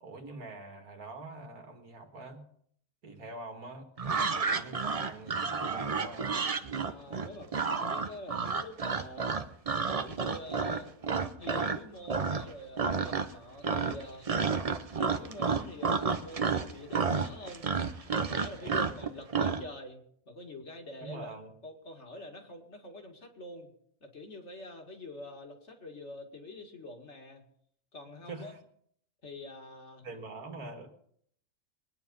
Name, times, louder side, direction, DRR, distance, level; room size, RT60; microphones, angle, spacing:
voice 1, 0.0-2.4 3.0-6.3 18.6-19.0 21.0-21.5 28.2-28.6 30.0-30.9, right 2 dB, 80° right, 4 dB, 2.3 m, -45 dB
sound 1, 4.0-11.8 12.1-12.5 12.8-13.4 13.6-19.6, right 5 dB, 35° right, 0.6 m, -30 dB
voice 2, 6.9-9.4 9.9-10.9 11.4-14.3 15.0-17.7 18.1-21.3 21.6-23.7 24.0-27.4 27.9-28.5 29.2-30.1, left 1 dB, 50° left, 3 dB, 2.4 m, -46 dB
22.0 x 9.6 x 5.4 m, 0.66 s
omnidirectional pair, 1.5 m